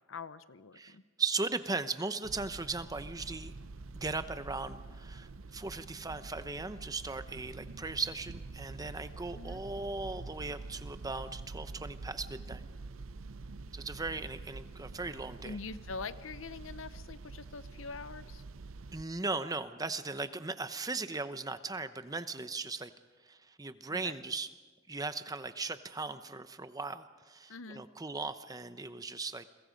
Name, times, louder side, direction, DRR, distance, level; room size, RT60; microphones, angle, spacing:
voice 1, 0.1-1.0 9.3-9.6 15.4-18.4 23.9-24.1 27.5-27.8, left 4 dB, 70° left, 14 dB, 0.8 m, -44 dB
voice 2, 0.8-3.5 3.9-12.6 13.7-15.6 18.9-22.9 23.2-24.5 24.9-29.4, right 3 dB, 20° right, 11 dB, 0.8 m, -38 dB
sound 1, 2.2-19.0, right 3 dB, 75° right, 0.7 m, -46 dB
30.0 x 23.0 x 5.2 m, 1.3 s
head